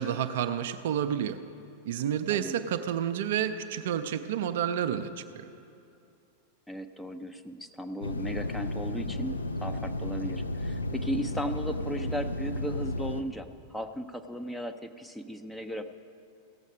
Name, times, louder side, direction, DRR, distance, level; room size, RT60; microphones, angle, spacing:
voice 1, 0.0-1.4 1.9-5.5, right 9 dB, 55° right, 9 dB, 0.5 m, -30 dB
voice 2, 6.7-15.9, equal, 5° left, 6 dB, 0.5 m, -36 dB
sound 1, 8.0-13.2, left 1 dB, 75° left, 0.5 m, -33 dB
16.5 x 7.2 x 5.4 m, 2.6 s
figure-of-eight pair, 90°, 0 cm